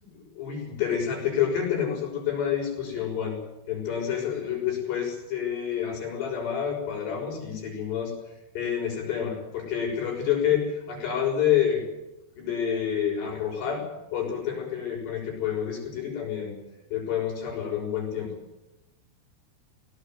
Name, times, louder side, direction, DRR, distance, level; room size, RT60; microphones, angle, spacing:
voice 1, 0.4-3.4 3.7-8.1 8.5-11.8 12.4-13.9 14.1-16.6 16.9-18.3, left 8 dB, 85° left, -1 dB, 8.3 m, -28 dB
18.5 x 18.0 x 9.4 m, 0.98 s
omnidirectional pair, 4.7 m